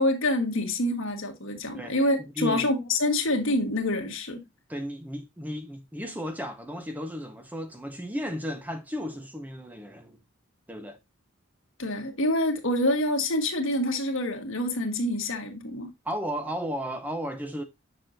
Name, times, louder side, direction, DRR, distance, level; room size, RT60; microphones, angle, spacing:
voice 1, 0.0-4.4 11.8-15.9, left 1 dB, 65° left, 1.5 m, -26 dB
voice 2, 2.4-2.7 4.7-10.2 10.7-11.0 16.0-17.6, equal, 10° right, 0.6 m, -34 dB
6.7 x 6.0 x 2.5 m
head